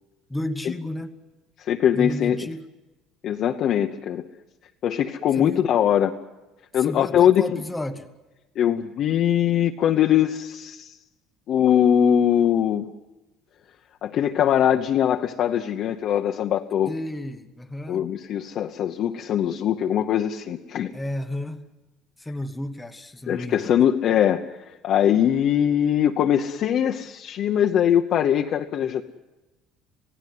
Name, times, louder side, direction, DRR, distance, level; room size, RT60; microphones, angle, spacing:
voice 1, 0.3-1.2 1.9-2.7 5.4-5.7 6.8-8.1 16.9-18.0 20.9-21.7 22.2-23.7, left 1 dB, 5° left, 4 dB, 1.0 m, -32 dB
voice 2, 1.6-2.5 3.2-4.2 4.8-6.1 6.7-7.6 8.6-10.9 11.5-12.9 14.0-16.9 17.9-20.9 23.3-29.0, left 10 dB, 40° left, 3 dB, 0.9 m, -21 dB
27.0 x 17.0 x 9.5 m, 1.1 s
cardioid pair, 170°, 0 cm